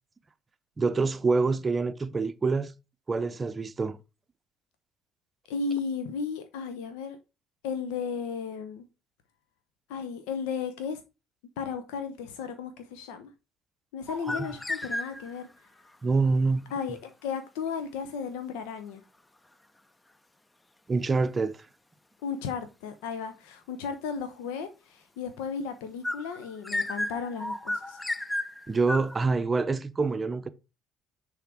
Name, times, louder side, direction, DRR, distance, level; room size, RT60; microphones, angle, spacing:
voice 1, 0.8-2.7 3.1-4.0 14.3-14.4 16.0-16.7 20.9-21.5 28.7-30.5, right 4 dB, 25° right, 0.7 m, -26 dB
voice 2, 5.5-7.2 7.6-8.9 9.9-11.0 11.6-13.3 13.9-15.5 16.7-19.0 22.2-28.0, left 6 dB, 65° left, 0.8 m, -34 dB
sound 1, 14.1-15.5 26.0-29.2, left 1 dB, 15° left, 0.6 m, -33 dB
10.0 x 3.5 x 4.9 m
figure-of-eight pair, 55°, 0 cm